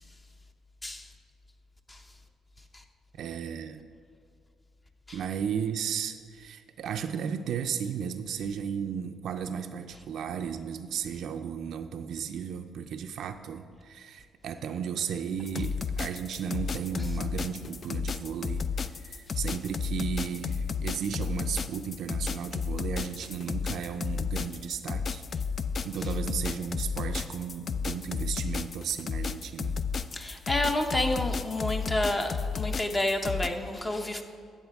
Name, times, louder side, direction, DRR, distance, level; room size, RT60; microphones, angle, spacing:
voice 1, 3.2-3.9 5.1-18.7 19.0-25.2 25.8-29.8, right 7 dB, 70° right, 7 dB, 0.4 m, -34 dB
sound 1, 15.5-33.5, left 5 dB, 45° left, 0.3 m, -32 dB
voice 2, 30.1-34.2, left 1 dB, 25° left, 5 dB, 0.8 m, -29 dB
12.5 x 7.5 x 3.5 m, 2.1 s
cardioid pair, 90°, 0 cm